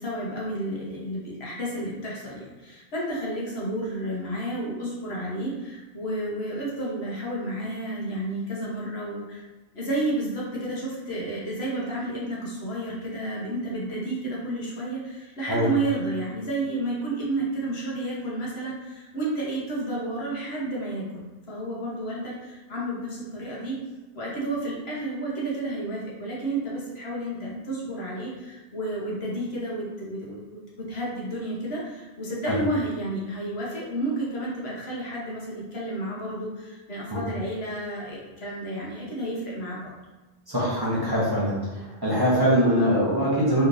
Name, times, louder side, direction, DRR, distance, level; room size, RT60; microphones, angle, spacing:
voice 1, 0.0-9.4 9.7-23.8 24.1-39.9, right 1 dB, 75° left, -5 dB, 1.3 m, -31 dB
voice 2, 40.5-43.7, equal, 25° right, -8 dB, 0.7 m, -23 dB
3.5 x 3.0 x 2.6 m, 1.2 s
omnidirectional pair, 1.1 m